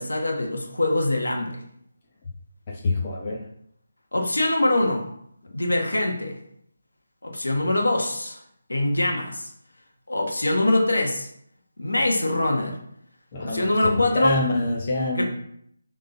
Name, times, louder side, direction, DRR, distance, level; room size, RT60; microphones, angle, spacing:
voice 1, 0.0-1.6 4.1-5.1 5.5-6.4 7.2-8.4 8.7-9.5 10.1-11.3 11.8-12.8 13.4-14.4 15.1-15.2, left 2 dB, 75° left, 2 dB, 1.5 m, -23 dB
voice 2, 2.7-3.4 13.3-15.2, left 2 dB, 35° left, -1 dB, 1.1 m, -26 dB
6.7 x 3.8 x 4.0 m, 0.70 s
figure-of-eight pair, 150°, 0 cm